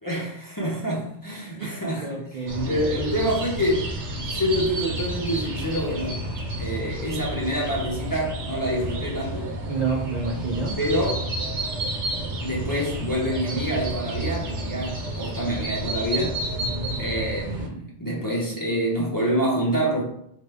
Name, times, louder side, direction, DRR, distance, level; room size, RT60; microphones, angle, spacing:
voice 1, 0.0-2.2 2.6-6.2 6.6-9.5 10.8-11.3 12.4-16.4 17.0-20.0, equal, 20° left, -4 dB, 0.6 m, -27 dB
voice 2, 1.6-2.8 9.7-10.8 16.6-17.0, right 4 dB, 55° right, -2 dB, 0.5 m, -30 dB
sound 1, 2.5-17.7, right 1 dB, 75° right, 1.0 m, -30 dB
4.4 x 2.5 x 3.4 m, 0.72 s
omnidirectional pair, 1.2 m